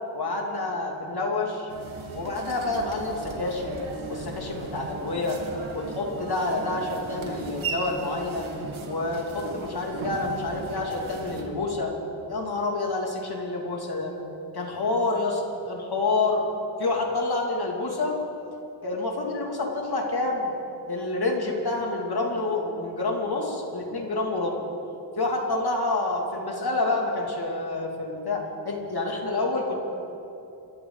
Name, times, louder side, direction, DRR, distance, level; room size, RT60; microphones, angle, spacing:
voice 1, 0.1-1.7 2.1-3.8 4.1-5.4 5.7-8.5 8.9-11.9 12.3-14.1 14.5-15.4 15.7-16.4 16.8-18.2 18.8-20.5 20.9-24.6 25.2-29.8, left 2 dB, 55° left, 0 dB, 2.9 m, -28 dB
sound 1, 1.7-11.4, right 4 dB, 90° right, 1.9 m, -37 dB
25.0 x 13.5 x 4.1 m, 3.0 s
wide cardioid pair, 85°, 46 cm